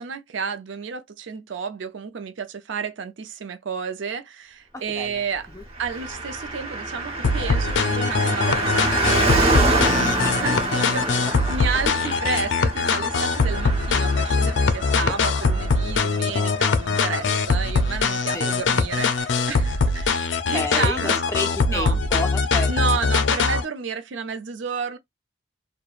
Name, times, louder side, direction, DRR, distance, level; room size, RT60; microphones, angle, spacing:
voice 1, 0.0-5.5 5.8-21.2 21.7-22.0 22.7-25.0, right 5 dB, 70° right, 0.5 m, -31 dB
Car passing by, 5.8-17.6 17.9-18.0, right 2 dB, 35° right, 1.2 m, -27 dB
sound 1, 7.2-23.6, left 4 dB, 65° left, 0.4 m, -22 dB
voice 2, 20.5-22.7, left 2 dB, 15° left, 0.5 m, -30 dB
3.0 x 2.1 x 2.3 m
head